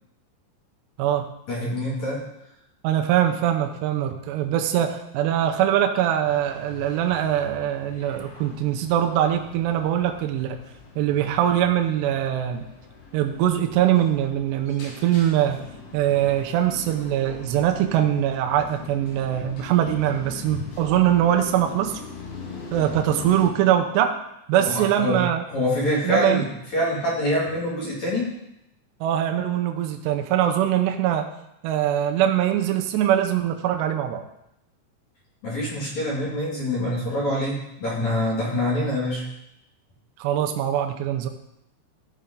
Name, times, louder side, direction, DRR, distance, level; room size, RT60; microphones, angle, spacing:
voice 1, 1.5-2.3 24.6-25.2 25.5-28.3 35.4-39.2, left 1 dB, 45° left, -6 dB, 3.0 m, -25 dB
voice 2, 2.8-10.6 11.0-12.7 13.1-15.6 15.9-21.9 22.7-24.2 24.5-25.4 26.0-26.4 29.0-31.3 31.6-34.2 40.2-41.3, right 11 dB, 75° right, 3 dB, 2.6 m, -22 dB
sound 1, 6.2-23.5, left 4 dB, 75° left, 4.3 m, -41 dB
14.5 x 5.6 x 3.8 m, 0.83 s
omnidirectional pair, 5.5 m